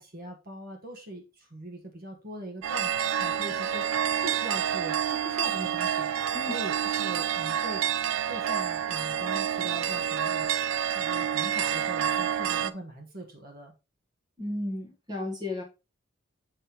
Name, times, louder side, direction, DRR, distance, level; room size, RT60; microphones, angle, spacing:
voice 1, 0.0-7.8 8.1-10.5 10.9-13.7, right 1 dB, 45° right, 1.2 m, -41 dB
sound 1, 2.6-12.7, right 9 dB, 75° right, 0.4 m, -28 dB
voice 2, 14.4-15.6, left 2 dB, 20° right, 1.2 m, -33 dB
6.9 x 5.4 x 2.9 m
head